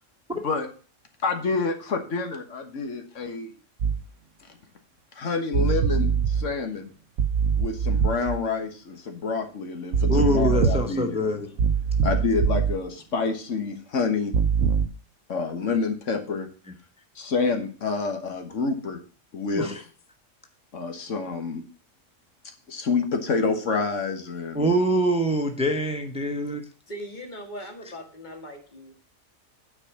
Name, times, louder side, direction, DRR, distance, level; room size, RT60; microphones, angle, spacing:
voice 1, 1.2-3.6 5.2-6.9 7.6-11.2 12.0-14.3 15.3-16.5 17.2-19.0 19.3-19.7 20.7-21.6 22.7-24.7, left 4 dB, 80° left, 5 dB, 1.6 m, -28 dB
sound 1, 3.8-4.0 5.5-6.5 7.2-8.4 9.9-11.0 11.6-12.8 14.3-14.9, right 6 dB, 80° right, 1.1 m, -23 dB
voice 2, 10.1-11.5 19.5-19.8 24.5-26.6, equal, 5° right, 5 dB, 1.0 m, -24 dB
voice 3, 26.9-28.9, equal, 40° left, 4 dB, 1.9 m, -39 dB
9.6 x 4.8 x 5.9 m, 0.41 s
omnidirectional pair, 1.3 m